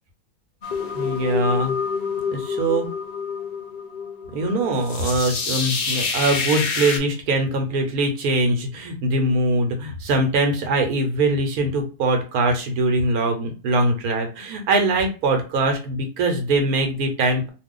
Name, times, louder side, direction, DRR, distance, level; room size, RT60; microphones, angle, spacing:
sound 1, 0.6-7.0, left 5 dB, 70° left, 0.4 m, -27 dB
voice 1, 0.9-1.7 2.3-2.9 4.3-17.5, right 2 dB, 80° right, 4 dB, 1.1 m, -22 dB
2.5 x 2.3 x 3.6 m, 0.33 s
omnidirectional pair, 1.5 m